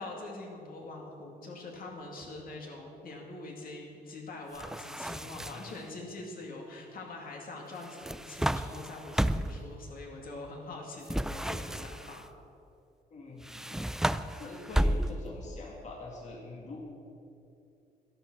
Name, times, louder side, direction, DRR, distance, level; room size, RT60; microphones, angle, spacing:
voice 1, 0.0-12.2, left 2 dB, 65° left, 0 dB, 2.3 m, -44 dB
sound 1, 4.5-5.8 7.8-9.7 11.1-12.2 13.4-15.4, right 1 dB, 5° right, 0.3 m, -32 dB
voice 2, 5.2-5.6 13.1-13.8 14.2-16.8, left 2 dB, 45° left, -2 dB, 2.0 m, -44 dB
12.0 x 11.5 x 6.1 m, 2.7 s
cardioid pair, 130°, 16 cm